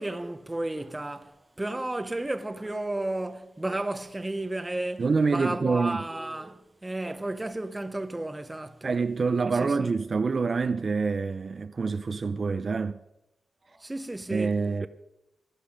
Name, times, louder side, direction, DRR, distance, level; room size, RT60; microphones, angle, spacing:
voice 1, 0.0-9.0 9.6-10.0 13.7-14.9, right 2 dB, 15° right, 0.8 m, -33 dB
voice 2, 5.0-6.0 8.8-13.0 14.3-14.9, right 4 dB, 45° right, 0.5 m, -26 dB
15.5 x 12.5 x 5.2 m
wide cardioid pair, 110°, 0 cm